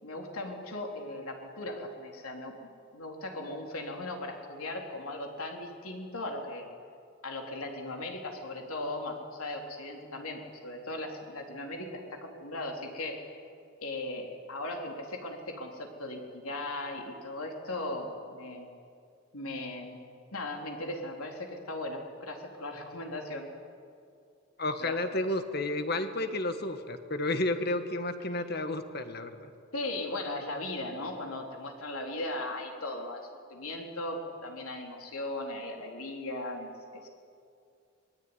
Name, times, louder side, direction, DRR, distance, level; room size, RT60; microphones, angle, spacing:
voice 1, 0.0-2.5 2.9-6.7 7.2-13.3 13.8-18.7 19.3-20.0 20.3-23.5 24.8-25.1 29.7-37.1, left 2 dB, 80° left, 2 dB, 4.0 m, -38 dB
voice 2, 24.6-29.5, left 2 dB, 45° left, 8 dB, 1.7 m, -31 dB
26.0 x 20.5 x 9.9 m, 2.4 s
head